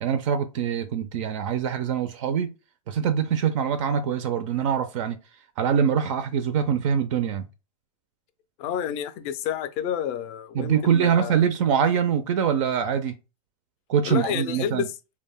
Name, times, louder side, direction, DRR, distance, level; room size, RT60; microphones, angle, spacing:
voice 1, 0.0-2.5 2.9-5.2 5.6-7.5 10.5-13.1 13.9-14.9, right 7 dB, 55° right, 0.4 m, -24 dB
voice 2, 8.6-11.4 14.0-14.9, left 9 dB, 35° left, 0.4 m, -29 dB
2.2 x 2.0 x 3.3 m
hypercardioid pair, 135°, 19 cm